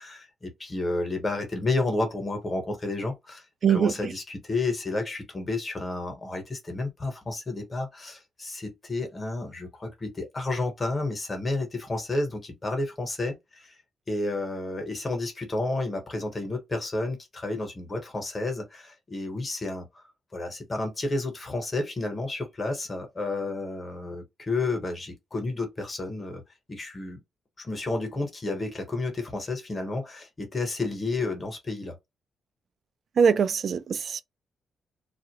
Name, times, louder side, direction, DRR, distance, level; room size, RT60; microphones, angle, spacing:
voice 1, 0.0-3.4 3.7-13.7 14.1-20.1 20.3-26.4 26.7-27.2 27.6-32.0, left 2 dB, 25° left, 1.1 m, -31 dB
voice 2, 33.2-34.2, right 7 dB, 50° right, 0.3 m, -22 dB
2.4 x 2.1 x 2.8 m
cardioid pair, 110°, 0 cm